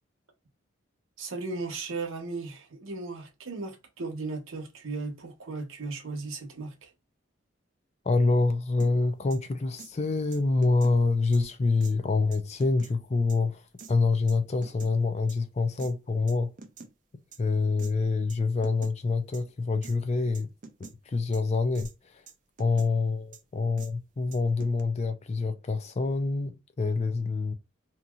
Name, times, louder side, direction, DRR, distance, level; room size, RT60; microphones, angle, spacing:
voice 1, 1.2-6.9, right 3 dB, 80° right, 0.9 m, -36 dB
voice 2, 8.1-13.6 13.9-16.5 17.4-20.5 21.1-21.9 22.6-27.5, left 3 dB, 30° left, 0.4 m, -26 dB
sound 1, 8.8-8.9 9.3-9.4 9.8-9.9 10.3-11.0 11.3-11.4 11.8-11.9 12.3-12.9 13.3-13.4 13.8-13.9 14.3-14.9 15.3-15.4 15.8-15.9 16.3-16.9 17.3-17.4 17.8-17.9 18.3-18.4 18.6-18.9 19.3-19.4 19.8-19.9 20.3-20.9 21.3-21.4 21.7-21.9 22.3-22.9 23.3-23.4 23.8-23.9 24.3-24.8, right 4 dB, 40° right, 0.4 m, -46 dB
2.8 x 2.6 x 2.3 m
head